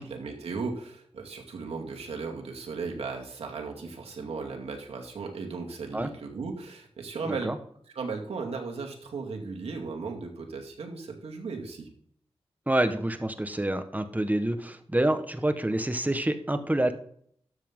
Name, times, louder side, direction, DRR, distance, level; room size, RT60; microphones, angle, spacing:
voice 1, 0.0-7.6 7.9-11.9, right 4 dB, 85° right, 1 dB, 2.3 m, -36 dB
voice 2, 12.7-16.9, right 1 dB, 15° right, 8 dB, 1.4 m, -27 dB
12.5 x 7.5 x 3.9 m, 0.62 s
cardioid pair, 50°, 10 cm